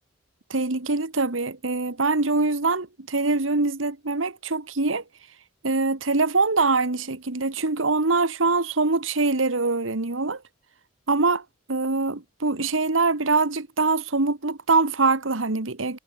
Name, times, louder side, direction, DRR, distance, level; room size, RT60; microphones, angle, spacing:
voice 1, 0.5-5.0 5.6-10.4 11.1-11.4 11.7-16.0, right 3 dB, 85° right, 1.7 m, -23 dB
head